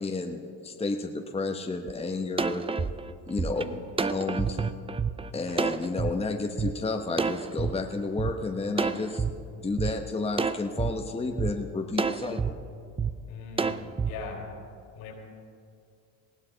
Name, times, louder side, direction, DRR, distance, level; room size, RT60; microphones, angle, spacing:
voice 1, 0.0-2.6 3.3-3.6 4.1-4.6 5.3-9.2 9.5-12.6, left 3 dB, 15° left, 3 dB, 1.1 m, -31 dB
sound 1, 1.9-2.0 2.4-6.1 6.6-6.7 7.2-8.3 8.8-9.3 9.8-9.9 10.4-10.9 11.4-11.5 12.0-12.5 13.0-13.1 13.6-14.1, right 5 dB, 15° right, 0.5 m, -28 dB
voice 2, 13.3-14.6 14.9-15.1, left 4 dB, 70° left, 0 dB, 4.5 m, -40 dB
19.5 x 16.0 x 4.0 m, 2.4 s
supercardioid pair, 95°, 40 cm